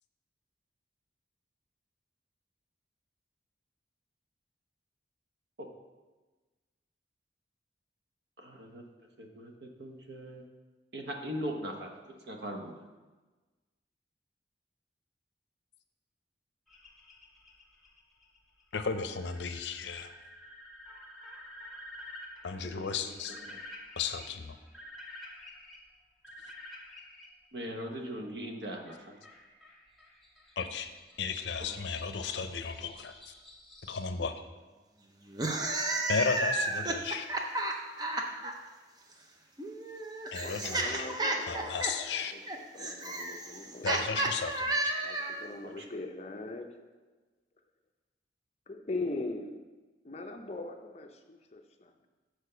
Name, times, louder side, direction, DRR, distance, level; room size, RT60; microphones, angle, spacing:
voice 1, 8.4-8.8 9.2-10.4 10.9-12.8 22.6-23.1 23.4-23.6 27.5-29.0 45.8-45.9, equal, 75° right, 3 dB, 1.0 m, -40 dB
sound 1, 16.7-27.3 28.9-34.1, left 1 dB, ahead, 1.0 m, -50 dB
voice 2, 18.7-20.1 22.4-23.4 24.0-24.6 30.6-30.9 31.2-33.3 33.9-34.4 36.1-37.3 40.3-41.1 41.5-42.3 43.8-44.9, left 5 dB, 80° left, 8 dB, 0.6 m, -34 dB
sound 2, 35.3-38.5 39.6-45.5, right 2 dB, 25° right, 0.6 m, -32 dB
voice 3, 40.3-41.9 42.3-42.4 42.7-44.1 45.0-47.1 48.7-49.7 50.0-52.1, left 2 dB, 35° left, 5 dB, 0.6 m, -40 dB
6.6 x 4.5 x 6.7 m, 1.3 s
head